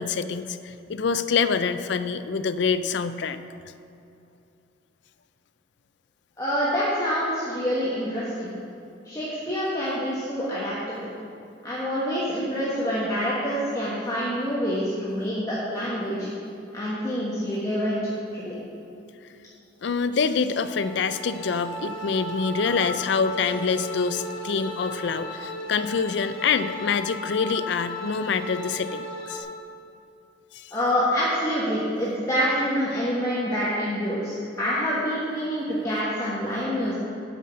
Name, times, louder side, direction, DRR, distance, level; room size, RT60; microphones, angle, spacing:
voice 1, 0.0-3.4 19.8-29.5 30.5-30.7, left 5 dB, 60° left, 12 dB, 0.4 m, -26 dB
voice 2, 6.4-8.5 9.0-11.1 11.6-16.3 16.7-18.0 18.3-18.5 30.7-36.9, equal, 20° left, -8 dB, 1.4 m, -26 dB
sound 1, 20.5-29.4, left 1 dB, 80° left, 1.4 m, -36 dB
9.2 x 5.7 x 7.5 m, 2.7 s
head